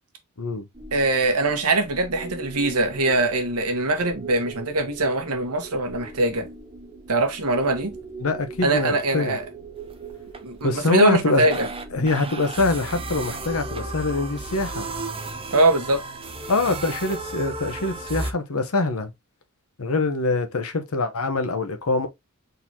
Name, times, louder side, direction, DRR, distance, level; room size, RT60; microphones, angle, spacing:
o Rei do universo, 0.7-18.3, right 3 dB, 25° right, 0.7 m, -36 dB
voice 1, 0.9-6.4 7.1-7.9 8.6-9.4 10.4-11.7 15.5-16.0, right 2 dB, 90° right, 1.2 m, -22 dB
voice 2, 8.2-9.4 10.6-11.6 11.9-14.9 16.5-19.1 19.8-22.1, left 2 dB, 70° left, 0.9 m, -24 dB
4.5 x 4.0 x 2.7 m
head